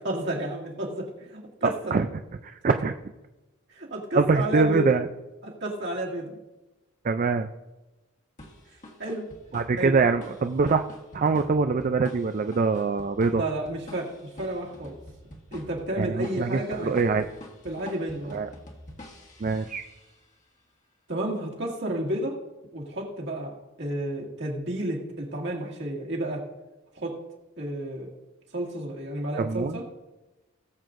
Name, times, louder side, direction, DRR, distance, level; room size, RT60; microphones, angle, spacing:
voice 1, 0.0-2.0 3.7-5.0 5.4-6.4 9.0-9.3 9.8-9.9 13.3-15.0 15.5-16.9 17.6-18.4 21.1-22.4 22.7-26.5 26.9-27.2 27.6-28.1 28.5-29.8, right 1 dB, 55° right, -2 dB, 2.1 m, -31 dB
voice 2, 1.6-2.1 2.4-2.9 4.1-5.1 7.0-7.5 9.5-10.8 11.1-13.4 16.0-17.2 18.3-18.5 19.4-19.9 29.4-29.8, right 4 dB, 40° right, 7 dB, 0.3 m, -24 dB
sound 1, 8.4-20.3, left 1 dB, 35° left, 1.4 m, -47 dB
18.5 x 7.7 x 2.6 m, 1.1 s
head